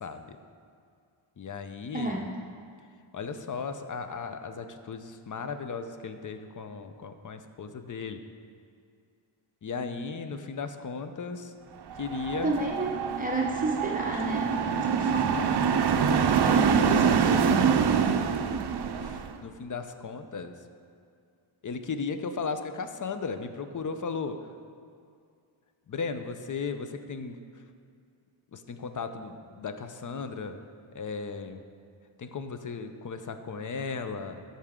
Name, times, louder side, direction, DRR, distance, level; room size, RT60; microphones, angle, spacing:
voice 1, 0.0-0.4 1.4-2.2 3.1-8.2 9.6-11.5 12.0-12.5 19.0-20.6 21.6-24.5 25.9-27.4 28.5-30.6 30.9-31.6 32.2-34.6, left 5 dB, 40° left, 9 dB, 0.6 m, -36 dB
sound 1, 11.9-19.3, right 7 dB, 55° right, 0.6 m, -25 dB
voice 2, 12.4-12.9 13.2-14.5 14.8-15.5 16.4-17.6, right 2 dB, 15° right, -3 dB, 0.8 m, -30 dB
13.0 x 5.7 x 3.7 m, 2.3 s
wide cardioid pair, 85°, 50 cm